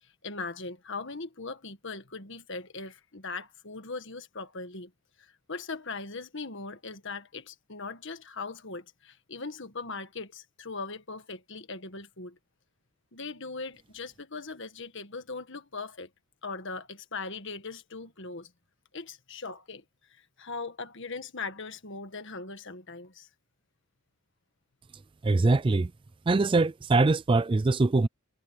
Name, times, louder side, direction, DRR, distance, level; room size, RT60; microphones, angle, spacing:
voice 1, 0.0-4.9 5.2-12.4 13.1-16.1 16.4-18.5 18.9-19.8 20.2-23.3, left 4 dB, 55° left, 1.7 m, -40 dB
voice 2, 25.2-25.9 26.3-28.1, right 3 dB, 20° right, 0.3 m, -23 dB
head